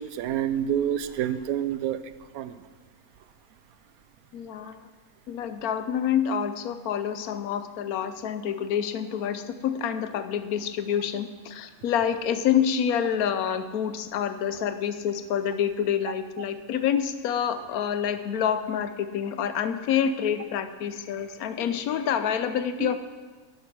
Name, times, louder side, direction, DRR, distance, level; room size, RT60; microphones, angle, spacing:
voice 1, 0.0-2.0 2.3-2.6 22.8-22.9, right 10 dB, 80° right, 13 dB, 1.1 m, -28 dB
voice 2, 4.3-4.8 5.3-23.0, left 8 dB, 85° left, 10 dB, 1.2 m, -27 dB
11.0 x 7.9 x 6.0 m, 1.4 s
omnidirectional pair, 1.5 m